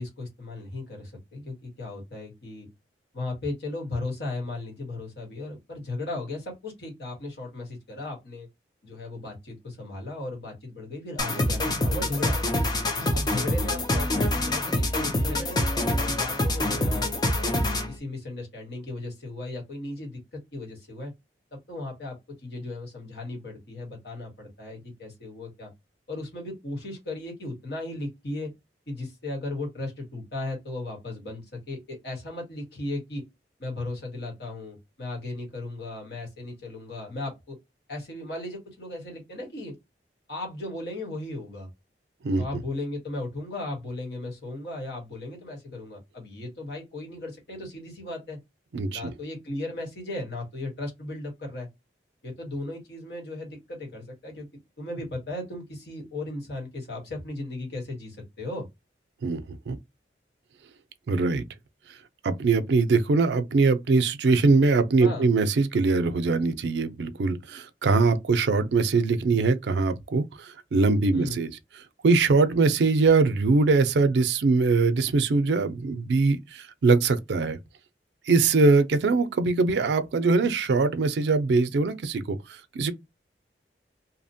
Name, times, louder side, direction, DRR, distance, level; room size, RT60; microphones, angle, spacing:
voice 1, 0.0-2.7 3.1-8.5 8.8-12.6 13.1-17.6 17.9-21.1 21.5-25.7 26.1-28.5 28.9-33.2 33.6-37.6 37.9-39.7 40.3-41.7 42.3-48.4 48.9-51.7 52.2-54.5 54.8-58.7 65.0-65.3 69.3-69.4 71.1-71.4, left 2 dB, 70° left, 1.2 m, -36 dB
sound 1, 11.2-18.0, left 1 dB, 25° left, 0.4 m, -26 dB
voice 2, 48.7-49.1 59.2-59.8 61.1-61.4 62.2-71.5 72.0-77.6 78.3-82.9, right 3 dB, 75° right, 0.4 m, -22 dB
2.8 x 2.1 x 2.7 m
head